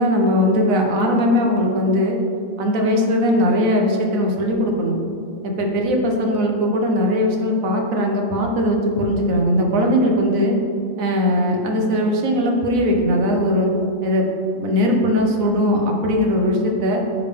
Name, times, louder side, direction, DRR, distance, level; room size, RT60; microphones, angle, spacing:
voice 1, 0.0-2.2 2.6-5.0 5.4-10.6 11.0-13.7 14.0-14.3 14.5-17.0, equal, 80° right, 1 dB, 1.3 m, -19 dB
9.6 x 3.5 x 3.7 m, 2.5 s
omnidirectional pair, 1.4 m